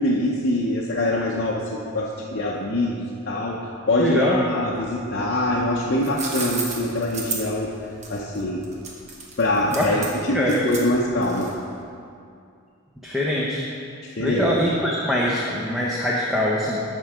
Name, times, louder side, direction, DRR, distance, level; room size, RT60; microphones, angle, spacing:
voice 1, 0.0-3.6 3.9-7.7 8.1-8.7 9.4-11.5 14.0-14.5, left 1 dB, 50° left, -4 dB, 0.7 m, -24 dB
voice 2, 4.0-4.5 9.7-9.9 10.3-10.6 13.0-13.6 14.2-16.8, left 1 dB, ahead, -6 dB, 0.7 m, -23 dB
sound 1, 5.8-11.7, right 4 dB, 35° right, 1.1 m, -33 dB
13.5 x 4.5 x 5.0 m, 2.4 s
head